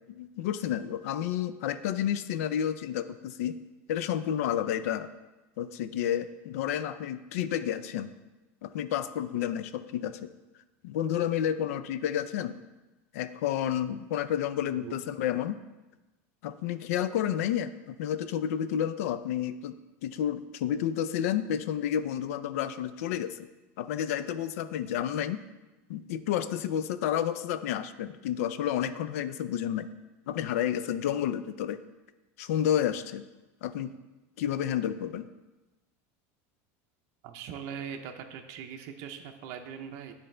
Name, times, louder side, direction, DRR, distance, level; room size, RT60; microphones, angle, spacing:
voice 1, 0.1-3.6 3.9-5.1 5.6-8.1 8.6-10.3 10.8-12.6 13.1-15.5 16.4-19.8 20.0-23.5 23.8-25.4 25.9-29.9 30.3-31.8 32.4-33.2 33.6-33.9 34.4-35.3, left 10 dB, 85° left, 13 dB, 0.4 m, -30 dB
voice 2, 37.2-40.1, right 7 dB, 50° right, 4 dB, 0.6 m, -41 dB
10.0 x 4.0 x 3.2 m, 1.1 s
supercardioid pair, 160°, 8 cm